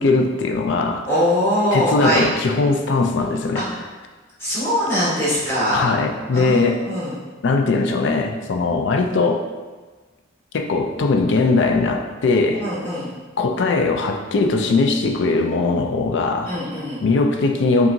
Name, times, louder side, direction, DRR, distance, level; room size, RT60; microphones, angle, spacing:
voice 1, 0.0-1.0 1.7-3.7 5.7-6.8 7.4-9.5 10.5-12.7 13.4-16.5 17.0-17.9, left 3 dB, 60° left, 4 dB, 0.4 m, -20 dB
voice 2, 1.1-2.2 3.5-3.6 4.4-5.9 6.3-7.1 12.6-13.1 16.4-17.0, equal, 10° left, -11 dB, 1.2 m, -22 dB
5.6 x 2.5 x 2.6 m, 1.3 s
head